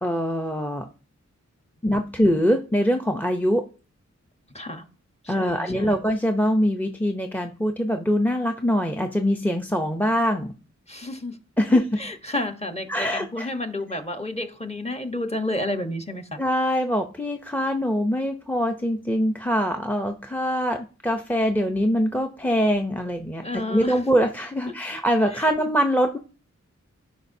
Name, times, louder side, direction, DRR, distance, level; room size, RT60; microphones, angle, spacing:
voice 1, 0.0-0.9 1.8-3.7 5.3-10.5 11.6-12.1 12.9-13.5 16.4-26.2, equal, 5° left, 6 dB, 0.6 m, -23 dB
voice 2, 5.2-6.0 10.9-11.4 12.0-16.4 23.4-24.0 25.3-25.5, left 1 dB, 20° left, 6 dB, 1.1 m, -31 dB
12.5 x 5.2 x 2.7 m, 0.37 s
wide cardioid pair, 80°, 29 cm